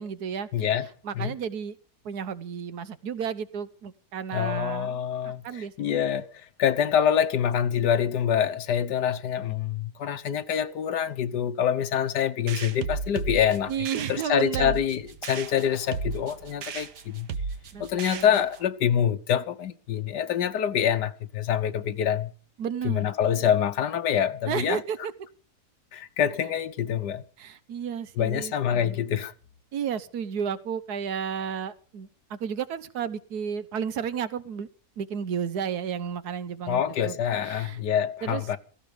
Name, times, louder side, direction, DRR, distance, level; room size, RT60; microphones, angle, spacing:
voice 1, 0.0-0.5 1.0-1.8 2.0-5.0 5.2-6.1 13.7-14.8 17.7-18.3 22.6-23.1 24.5-25.1 27.4-29.0 29.7-34.7 35.0-37.2 37.4-37.8 38.2-38.4, right 7 dB, 70° right, 1.6 m, -32 dB
voice 2, 0.5-0.9 1.1-1.3 4.3-13.7 14.1-17.3 17.8-22.3 22.8-24.8 25.9-27.2 28.2-29.3 36.7-38.6, left 9 dB, 90° left, 1.6 m, -26 dB
sound 1, 12.5-18.7, right 5 dB, 90° right, 1.8 m, -35 dB
17.0 x 15.5 x 5.0 m
omnidirectional pair, 1.7 m